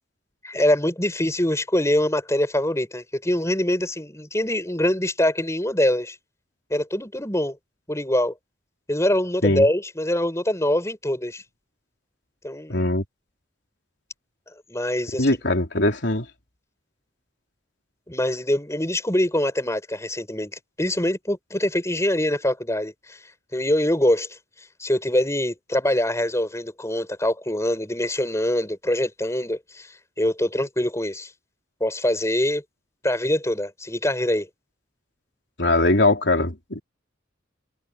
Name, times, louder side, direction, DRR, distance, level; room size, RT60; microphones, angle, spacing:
voice 1, 0.4-6.2 6.7-7.6 7.9-8.3 8.9-11.4 12.4-12.8 14.7-15.4 18.1-20.5 20.8-23.2 23.5-24.4 24.8-31.3 31.8-32.6 33.0-34.5, left 1 dB, 15° left, 6.3 m, -24 dB
voice 2, 12.7-13.0 15.2-16.3 35.6-36.8, left 2 dB, 70° left, 3.8 m, -21 dB
head